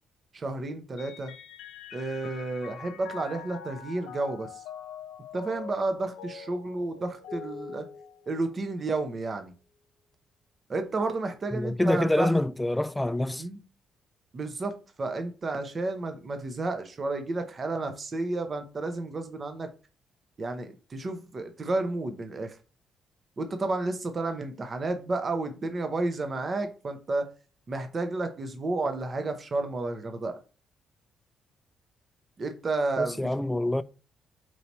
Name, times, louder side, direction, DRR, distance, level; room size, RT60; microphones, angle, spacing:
voice 1, 0.3-1.3 1.9-4.6 5.3-7.8 8.3-9.5 10.7-12.4 13.4-13.6 14.3-19.7 20.4-22.6 23.4-27.3 27.7-30.4 32.4-33.3, right 2 dB, 40° right, 0.7 m, -31 dB
Mallet percussion, 1.0-8.7, left 7 dB, 90° left, 0.6 m, -44 dB
voice 2, 11.5-13.4 33.0-33.8, left 1 dB, 10° left, 0.3 m, -26 dB
4.7 x 2.8 x 4.0 m
cardioid pair, 90°, 0 cm